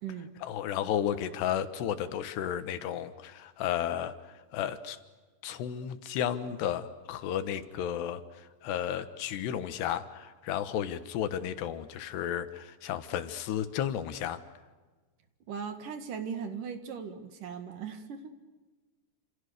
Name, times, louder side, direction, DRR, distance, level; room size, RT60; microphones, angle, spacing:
voice 1, 0.4-5.0 5.4-14.4, left 10 dB, 90° left, 11 dB, 3.5 m, -33 dB
voice 2, 15.5-18.3, right 6 dB, 60° right, 8 dB, 3.1 m, -38 dB
29.0 x 27.5 x 6.7 m, 1.3 s
omnidirectional pair, 4.7 m